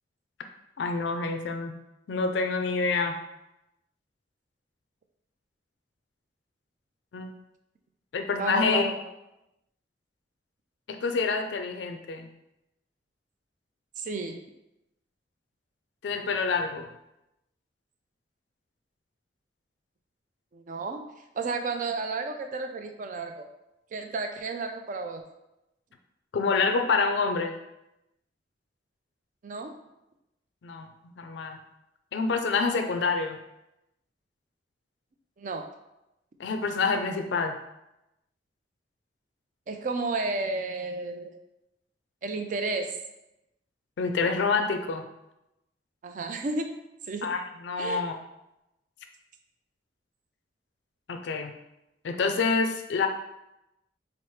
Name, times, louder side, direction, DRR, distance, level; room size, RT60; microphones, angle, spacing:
voice 1, 0.8-1.8 2.1-3.2 7.1-7.3 8.1-8.9 10.9-12.3 16.0-16.9 26.3-27.6 30.6-30.9 31.2-31.6 32.1-33.4 36.4-37.6 44.0-45.0 47.2-48.2 51.1-51.5 52.0-53.1, left 4 dB, 75° left, 6 dB, 0.4 m, -27 dB
voice 2, 8.4-9.0 14.0-14.4 20.5-21.0 21.3-23.5 23.9-25.2 29.4-29.7 35.4-35.6 39.7-41.3 42.2-42.9 46.0-46.7 47.1-47.3 47.8-48.0, right 3 dB, 45° right, 5 dB, 0.4 m, -32 dB
4.2 x 2.0 x 3.1 m, 0.89 s
head